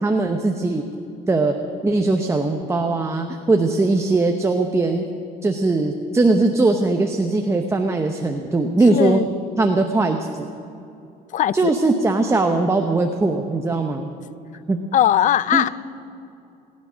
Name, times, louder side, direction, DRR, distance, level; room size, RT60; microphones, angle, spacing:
voice 1, 0.0-0.8 1.3-1.5 1.8-5.1 5.4-9.2 9.6-10.5 11.5-14.1 14.7-14.8 15.5-15.6, right 3 dB, 15° right, 4 dB, 0.9 m, -20 dB
voice 2, 8.9-9.3 11.3-11.7 14.9-15.7, left 11 dB, 50° left, 19 dB, 0.4 m, -19 dB
20.0 x 9.7 x 6.3 m, 2.7 s
cardioid pair, 110°, 17 cm